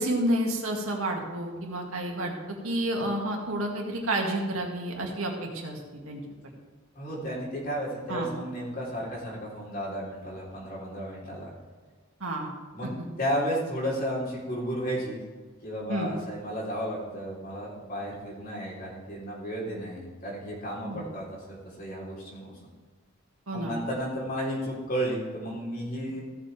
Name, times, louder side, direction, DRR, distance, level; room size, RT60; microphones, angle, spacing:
voice 1, 0.0-2.4 2.6-5.8 6.1-6.2 8.1-8.3 12.2-12.5 15.9-16.1 20.8-21.0 23.5-23.7, right 1 dB, 85° right, 0 dB, 2.1 m, -30 dB
voice 2, 7.0-11.5 12.7-15.2 15.6-22.5 23.5-26.2, equal, 45° left, -5 dB, 3.7 m, -33 dB
16.0 x 7.2 x 3.5 m, 1.4 s
head